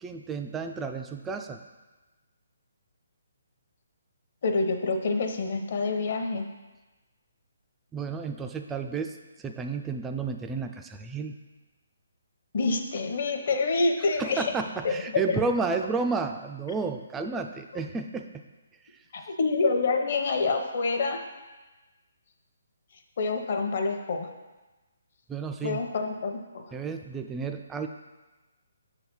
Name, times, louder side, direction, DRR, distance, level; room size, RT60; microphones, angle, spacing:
voice 1, 0.0-1.6 7.9-9.2 9.4-11.4 14.2-18.3 25.3-25.8 26.7-27.9, right 4 dB, 10° right, 5 dB, 0.3 m, -31 dB
voice 2, 4.4-6.5 12.5-14.5 14.8-15.4 19.1-21.2 23.2-24.3 25.6-26.7, left 3 dB, 45° left, 5 dB, 0.8 m, -27 dB
6.5 x 4.0 x 6.1 m, 1.2 s
hypercardioid pair, 170°, 0 cm